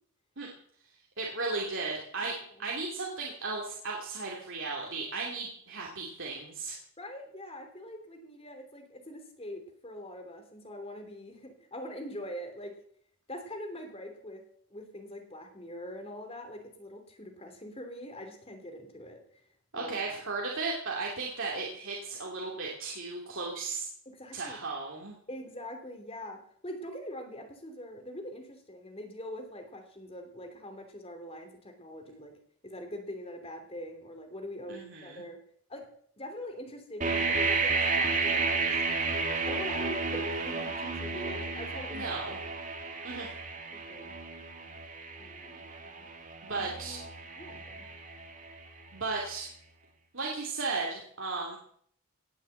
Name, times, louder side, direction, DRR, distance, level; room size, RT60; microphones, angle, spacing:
voice 1, 1.2-6.8 19.7-23.9 24.3-25.2 34.7-35.2 41.9-42.4 43.0-43.3 46.4-47.0 48.9-49.5 50.1-51.6, right 3 dB, 60° right, -2 dB, 2.8 m, -35 dB
voice 2, 7.0-12.7 13.3-14.4 14.7-19.4 19.7-20.2 24.0-24.6 25.3-32.3 32.6-35.4 35.7-35.9 36.2-38.7 39.4-42.2 43.7-44.1 45.2-46.0 46.5-47.1 47.4-47.9, left 1 dB, 25° left, 5 dB, 3.0 m, -43 dB
sound 1, 37.0-48.8, right 4 dB, 35° right, 2.3 m, -32 dB
18.5 x 7.2 x 7.9 m, 0.62 s
head